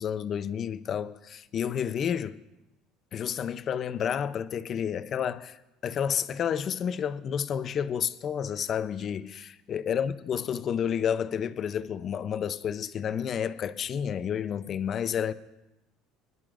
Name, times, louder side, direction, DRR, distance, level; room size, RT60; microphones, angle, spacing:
voice 1, 0.0-2.4 3.1-15.3, left 8 dB, 35° left, 0.5 m, -30 dB
25.5 x 11.0 x 2.5 m
cardioid pair, 150°, 0 cm